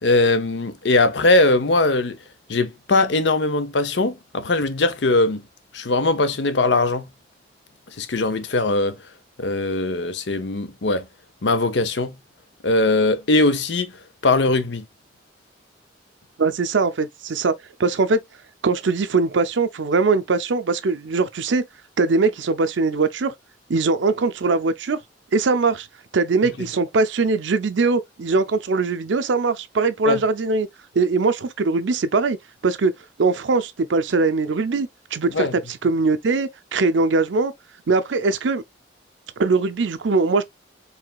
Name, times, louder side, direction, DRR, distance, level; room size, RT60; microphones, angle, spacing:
voice 1, 0.0-2.2 2.5-5.4 5.7-7.1 8.0-9.0 9.4-11.1 11.4-12.2 12.6-13.9 14.2-14.9 30.1-30.2 35.3-35.6, left 2 dB, 70° left, 0.7 m, -20 dB
voice 2, 16.4-17.5 17.8-18.2 18.6-21.6 22.0-23.3 23.7-25.0 25.3-25.9 26.1-30.7 30.9-32.4 32.6-32.9 33.2-37.5 37.9-38.6 39.4-40.4, right 3 dB, 80° right, 0.5 m, -21 dB
4.7 x 3.3 x 2.3 m
head